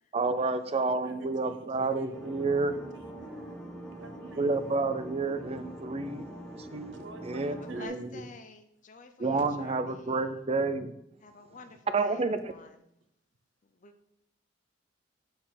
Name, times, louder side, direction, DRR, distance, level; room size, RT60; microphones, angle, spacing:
voice 1, 0.1-2.7 4.4-8.3 9.2-11.0 11.9-12.5, right 3 dB, 35° right, 11 dB, 0.6 m, -30 dB
voice 2, 1.0-2.2 2.6-3.6 4.0-4.6 7.0-8.3 9.4-9.5, right 4 dB, 70° right, 7 dB, 0.9 m, -50 dB
sound 1, 2.1-7.9, right 1 dB, 5° left, 1.4 m, -44 dB
voice 3, 7.6-10.2 11.2-12.8 13.6-13.9, left 4 dB, 40° left, 7 dB, 0.6 m, -50 dB
7.7 x 4.3 x 5.9 m, 0.79 s
head